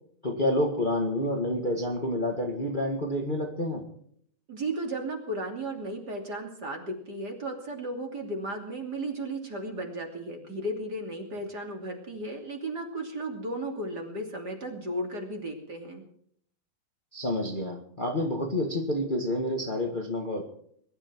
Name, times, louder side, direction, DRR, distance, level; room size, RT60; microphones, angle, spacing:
voice 1, 0.2-3.8 17.1-20.4, left 1 dB, 55° left, 2 dB, 0.5 m, -28 dB
voice 2, 4.5-16.0, right 1 dB, 30° right, 2 dB, 2.8 m, -35 dB
22.0 x 12.0 x 4.7 m, 0.65 s
omnidirectional pair, 4.6 m